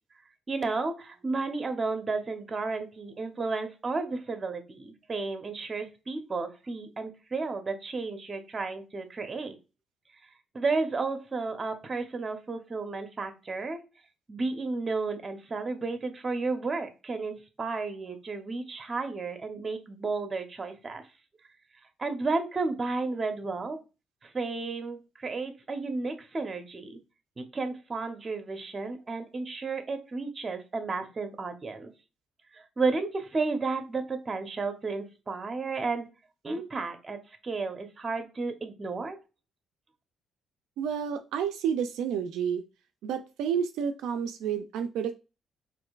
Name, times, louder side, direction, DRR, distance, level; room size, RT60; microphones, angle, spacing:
voice 1, 0.5-9.6 10.5-13.8 14.3-21.0 22.0-23.8 24.2-27.0 27.4-31.9 32.5-36.1 36.4-37.2 37.4-39.2, right 3 dB, 35° right, 7 dB, 0.8 m, -32 dB
voice 2, 40.8-42.6 43.0-45.1, right 7 dB, 85° right, 6 dB, 0.3 m, -30 dB
4.3 x 2.5 x 2.3 m, 0.30 s
cardioid pair, 75°, 0 cm